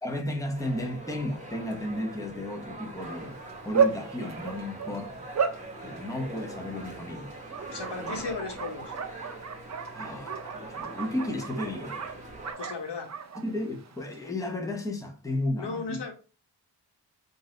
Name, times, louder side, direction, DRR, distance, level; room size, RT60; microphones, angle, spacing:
voice 1, 0.0-3.4 3.6-5.2 5.8-7.3 8.0-8.2 9.9-12.0 13.3-16.0, left 1 dB, 10° left, 0.8 m, -33 dB
sound 1, 0.5-12.5, right 2 dB, 15° right, 1.1 m, -43 dB
Bark, 3.0-14.3, right 6 dB, 40° right, 0.5 m, -34 dB
voice 2, 7.7-8.9 12.6-13.1 15.6-16.1, left 4 dB, 80° left, 1.0 m, -35 dB
3.9 x 2.6 x 3.7 m
wide cardioid pair, 75°, 41 cm